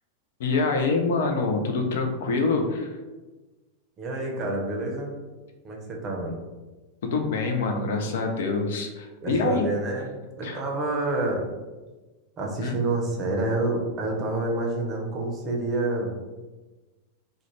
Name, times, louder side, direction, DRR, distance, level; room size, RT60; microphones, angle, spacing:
voice 1, 0.4-3.0 7.0-9.7 10.4-10.6 12.6-12.8, left 3 dB, 55° left, 3 dB, 0.4 m, -25 dB
voice 2, 4.0-5.1 5.6-6.4 9.2-11.5 12.4-16.1, right 2 dB, 30° right, 0 dB, 0.6 m, -28 dB
2.4 x 2.1 x 3.1 m, 1.2 s
figure-of-eight pair, 90°, 0 cm